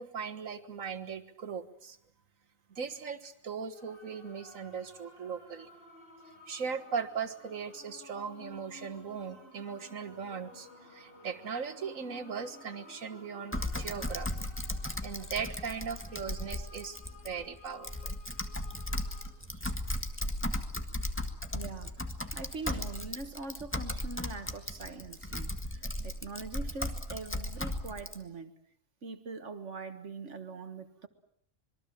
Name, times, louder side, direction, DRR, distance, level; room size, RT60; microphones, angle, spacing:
voice 1, 0.0-2.0 2.7-5.7 6.5-14.5 15.0-17.0 17.2-18.2, right 6 dB, 85° right, 1.9 m, -39 dB
sound 1, 3.7-19.3, left 2 dB, 45° left, 4.2 m, -55 dB
Typing, 13.5-28.2, left 1 dB, 10° left, 1.7 m, -36 dB
voice 2, 21.5-28.5 29.0-31.1, right 3 dB, 65° right, 1.9 m, -43 dB
26.5 x 22.0 x 7.6 m
omnidirectional pair, 1.4 m